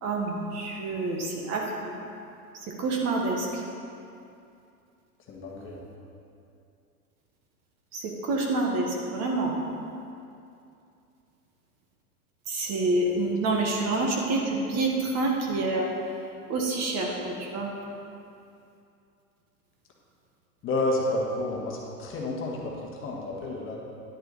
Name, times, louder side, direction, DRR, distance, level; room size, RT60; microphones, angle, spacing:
voice 1, 0.0-2.0 2.6-3.6 7.9-9.6 12.5-15.9 16.5-17.7, right 2 dB, 35° right, 0 dB, 1.4 m, -27 dB
voice 2, 5.3-5.8 20.6-23.8, left 2 dB, 25° left, -2 dB, 1.4 m, -30 dB
10.5 x 7.6 x 4.0 m, 2.6 s
hypercardioid pair, 110°, 46 cm